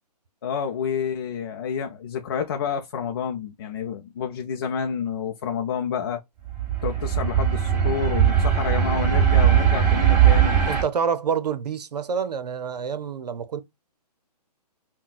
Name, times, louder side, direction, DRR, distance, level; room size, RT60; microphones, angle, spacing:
voice 1, 0.4-6.2 6.8-10.6, left 7 dB, 35° left, 0.5 m, -29 dB
sound 1, 6.5-10.8, right 9 dB, 10° right, 0.8 m, -19 dB
voice 2, 10.7-13.6, right 6 dB, 75° right, 0.7 m, -27 dB
5.6 x 2.2 x 2.4 m
hypercardioid pair, 160°, 21 cm